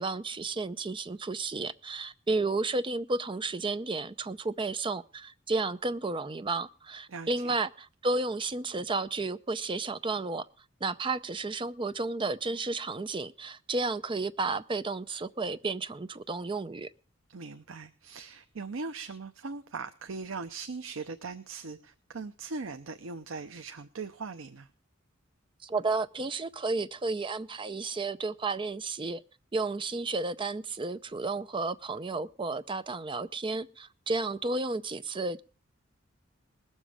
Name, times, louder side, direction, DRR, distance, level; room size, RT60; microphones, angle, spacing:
voice 1, 0.0-10.5 10.8-16.9 25.6-29.2 29.5-35.4, right 3 dB, 25° right, 0.5 m, -32 dB
voice 2, 7.1-7.6 17.3-24.7, right 4 dB, 85° right, 0.7 m, -40 dB
20.5 x 7.3 x 4.9 m
head